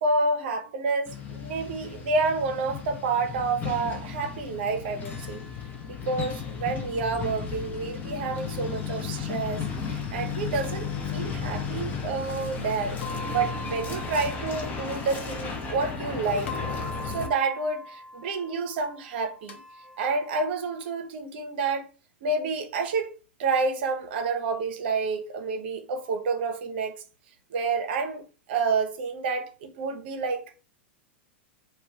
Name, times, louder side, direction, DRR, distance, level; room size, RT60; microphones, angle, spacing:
voice 1, 0.0-5.4 5.8-13.0 13.3-16.5 17.0-19.6 20.0-21.9 22.2-23.1 23.4-27.0 27.5-28.2 28.5-30.5, right 4 dB, 60° right, 0.6 m, -29 dB
Truck, 1.1-17.3, left 6 dB, 25° left, 0.6 m, -34 dB
sound 1, 5.1-7.2 8.4-9.4 10.6-11.8 13.0-16.1 16.5-20.9, left 2 dB, 80° left, 0.7 m, -43 dB
2.2 x 2.2 x 3.7 m
figure-of-eight pair, 100°, 7 cm